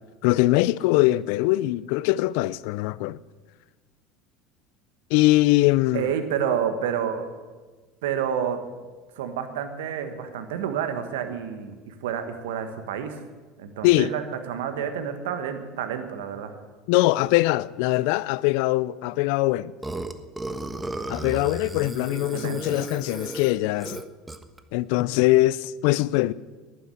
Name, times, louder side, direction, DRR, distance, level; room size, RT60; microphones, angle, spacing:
voice 1, 0.2-3.2 5.1-6.1 13.8-14.1 16.9-19.7 21.1-24.0 24.7-26.3, left 18 dB, 70° left, 0.4 m, -22 dB
voice 2, 5.9-7.3 8.0-8.6 9.2-13.2 13.6-16.5 22.3-22.7, right 8 dB, 75° right, 1.5 m, -29 dB
Burping eructation, 19.8-24.6, right 2 dB, 10° right, 1.3 m, -34 dB
11.5 x 10.0 x 9.9 m
hypercardioid pair, 75°, 0 cm